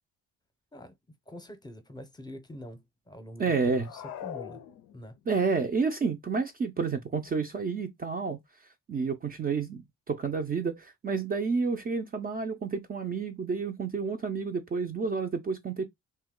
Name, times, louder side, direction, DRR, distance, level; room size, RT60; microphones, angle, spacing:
voice 1, 1.3-4.6 4.9-5.2, equal, 15° left, 0.7 m, -45 dB
voice 2, 3.4-3.9 5.3-8.4 8.9-15.8, right 4 dB, 30° right, 0.4 m, -30 dB
sound 1, 3.7-5.3, left 10 dB, 85° left, 0.5 m, -42 dB
2.7 x 2.2 x 3.6 m
cardioid pair, 90°, 30 cm